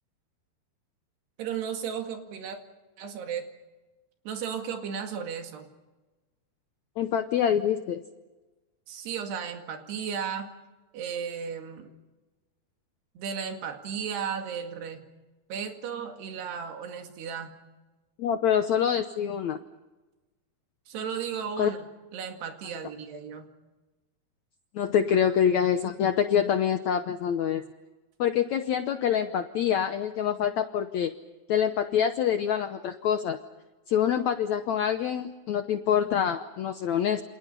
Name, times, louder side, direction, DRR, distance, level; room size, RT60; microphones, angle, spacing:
voice 1, 1.4-2.6 3.0-3.5 4.3-5.7 8.9-10.5 10.9-11.9 13.2-15.1 15.5-17.6 20.9-21.9 22.1-23.5, right 7 dB, 85° right, 4 dB, 4.3 m, -34 dB
voice 2, 7.0-8.0 18.2-19.6 21.6-21.7 24.7-27.6 28.2-31.1 31.5-33.4 33.9-37.2, left 9 dB, 90° left, 8 dB, 1.6 m, -26 dB
28.5 x 27.5 x 5.5 m, 1.2 s
omnidirectional pair, 4.6 m